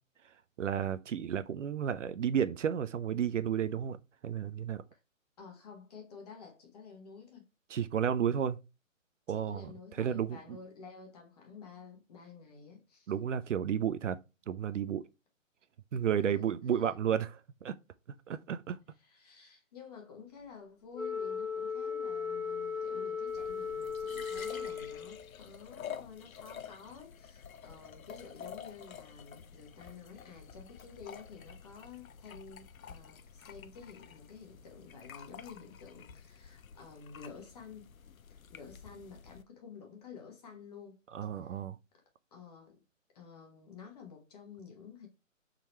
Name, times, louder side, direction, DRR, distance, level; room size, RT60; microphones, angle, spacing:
voice 1, 0.6-4.0 4.2-4.8 7.7-8.6 9.3-10.6 13.1-14.2 14.5-15.0 15.9-17.8 18.3-18.8 41.1-41.8, right 8 dB, 65° right, 0.5 m, -32 dB
voice 2, 5.4-7.4 8.3-8.4 9.3-13.1 16.2-16.9 19.0-37.9 38.3-41.0 41.4-41.6 42.3-42.8 43.1-45.1, left 6 dB, 30° left, 1.3 m, -51 dB
Wind instrument woodwind instrument, 20.9-25.3, left 6 dB, 75° left, 1.4 m, -37 dB
sound 1, 23.3-39.4, left 8 dB, 90° left, 0.6 m, -50 dB
3.8 x 2.9 x 4.3 m
hypercardioid pair, 155°, 40 cm